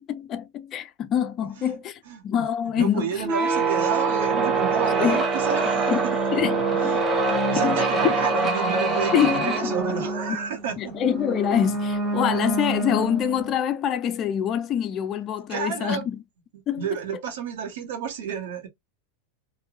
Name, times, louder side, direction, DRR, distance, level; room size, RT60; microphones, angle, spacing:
voice 1, 0.0-3.1 5.0-5.2 5.9-6.0 6.3-6.9 7.6-8.1 9.1-9.7 10.8-16.2 16.7-16.8, left 9 dB, 35° left, 0.4 m, -25 dB
voice 2, 2.0-6.4 6.7-10.9 15.5-16.1 16.5-18.7, right 7 dB, 70° right, 1.3 m, -31 dB
sound 1, 3.2-13.5, right 3 dB, 15° right, 1.0 m, -25 dB
3.0 x 2.6 x 2.5 m
hypercardioid pair, 120°, 0 cm